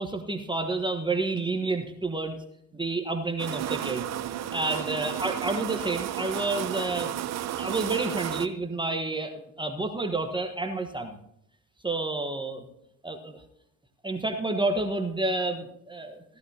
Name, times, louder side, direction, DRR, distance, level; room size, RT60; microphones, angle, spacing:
voice 1, 0.0-2.4 2.7-4.1 4.5-7.1 7.6-11.2 11.8-12.7 13.0-13.4 14.0-16.2, right 2 dB, 10° right, 4 dB, 1.2 m, -29 dB
sound 1, 3.4-8.5, right 11 dB, 45° right, 0.7 m, -33 dB
16.0 x 11.5 x 2.8 m, 0.76 s
hypercardioid pair, 70°, 38 cm